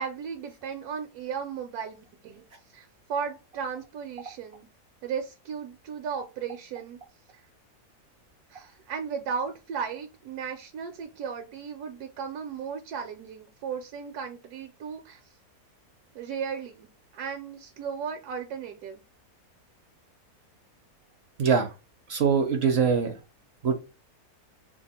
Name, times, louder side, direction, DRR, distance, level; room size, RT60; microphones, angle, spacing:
voice 1, 0.0-2.4 2.7-4.7 5.0-7.0 8.5-15.2 16.1-16.9 17.1-19.0, right 6 dB, 80° right, 1.1 m, -35 dB
voice 2, 21.4-21.7 22.1-23.2 23.6-23.7, right 6 dB, 65° right, 0.6 m, -23 dB
2.8 x 2.3 x 4.1 m
omnidirectional pair, 1.7 m